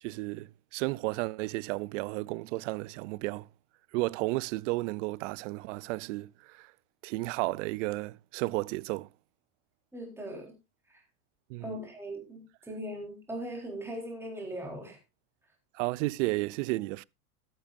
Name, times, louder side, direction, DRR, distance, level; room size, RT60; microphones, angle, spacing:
voice 1, 0.0-3.5 3.9-6.7 7.0-9.1 11.5-11.7 15.7-17.0, right 21 dB, 55° right, 0.5 m, -33 dB
voice 2, 9.9-10.5 10.9-11.0 11.6-15.0, right 1 dB, 5° right, 3.8 m, -39 dB
13.5 x 12.0 x 2.6 m
supercardioid pair, 125°, 45 cm